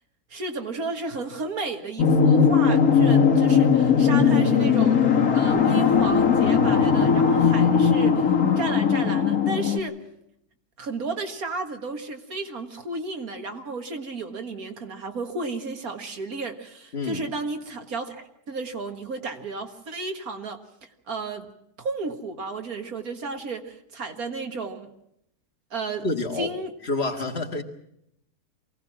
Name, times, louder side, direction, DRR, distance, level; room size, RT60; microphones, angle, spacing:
voice 1, 0.3-5.0 5.3-10.0 10.8-21.5 21.8-24.9 25.7-26.1 26.4-26.7, right 3 dB, 65° right, 6 dB, 2.1 m, -33 dB
sound 1, 2.0-9.8, left 6 dB, 65° left, 2.1 m, -19 dB
voice 2, 16.9-17.2 26.0-26.5 26.8-27.6, left 2 dB, 40° left, 4 dB, 2.0 m, -28 dB
23.5 x 17.0 x 7.4 m, 0.76 s
omnidirectional pair, 1.7 m